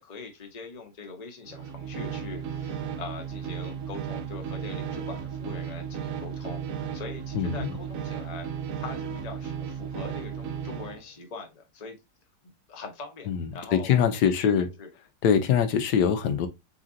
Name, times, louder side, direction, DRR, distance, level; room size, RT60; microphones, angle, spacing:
voice 1, 0.0-8.5 8.8-12.0 12.4-14.9, left 4 dB, 30° left, 0.9 m, -42 dB
sound 1, 1.4-11.0, right 8 dB, 65° right, 0.9 m, -35 dB
voice 2, 7.3-7.7 13.3-14.7 15.2-16.5, left 8 dB, 90° left, 1.3 m, -23 dB
4.1 x 3.8 x 2.6 m
omnidirectional pair, 1.8 m